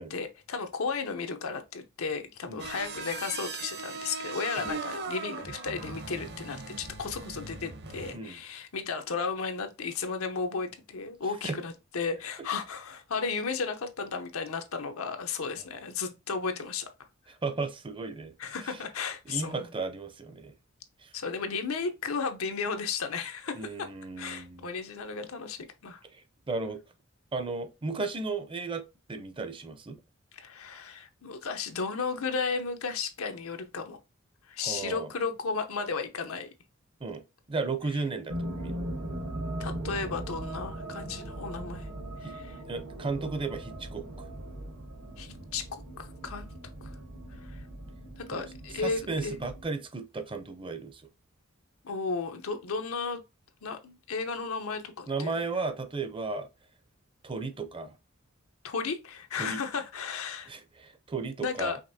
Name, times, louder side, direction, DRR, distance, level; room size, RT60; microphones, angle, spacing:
voice 1, 0.0-16.9 18.4-19.7 21.1-23.9 24.2-26.0 30.3-34.0 34.5-36.5 37.8-38.1 39.6-41.9 42.2-42.6 45.2-46.5 46.8-46.9 47.4-47.6 48.2-49.4 51.8-53.2 53.6-55.6 58.6-60.5 61.4-61.8, left 5 dB, 85° left, 0.7 m, -34 dB
sound 1, 2.6-8.1, right 4 dB, 55° right, 0.7 m, -39 dB
voice 2, 17.3-18.3 18.7-18.8 19.3-20.5 21.0-21.1 23.6-24.6 26.1-26.2 26.5-26.8 27.3-30.0 34.6-35.1 37.0-37.2 37.5-38.8 42.2-42.4 42.7-44.0 48.3-48.4 48.8-51.0 55.1-56.5 57.2-57.9 59.4-59.6 60.5-61.8, right 3 dB, 25° right, 0.5 m, -34 dB
sound 2, 38.3-49.6, right 1 dB, 75° right, 1.0 m, -39 dB
5.1 x 3.1 x 2.6 m
head